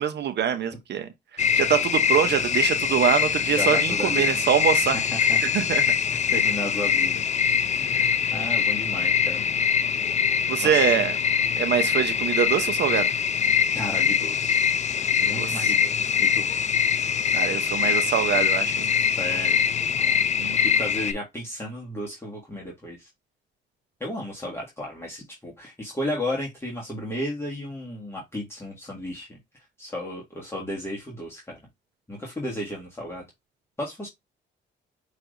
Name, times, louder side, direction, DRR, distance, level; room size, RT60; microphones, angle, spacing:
voice 1, 0.0-5.0 5.5-5.8 8.2-8.3 10.5-11.2 11.6-13.1 15.3-15.8 17.3-18.9 20.4-20.6, right 9 dB, 60° right, 0.7 m, -24 dB
sound 1, 1.4-21.1, left 7 dB, 35° left, 0.5 m, -23 dB
voice 2, 3.6-4.4 4.9-5.5 6.1-7.2 7.5-9.4 10.6-10.9 11.8-11.9 13.5-14.6 15.2-16.5 19.0-19.6 20.0-20.2 20.5-23.1 24.0-29.3 29.5-31.6 32.1-33.2 33.8-34.1, left 1 dB, 10° left, 1.7 m, -34 dB
5.7 x 3.3 x 2.6 m
cardioid pair, 90°, 20 cm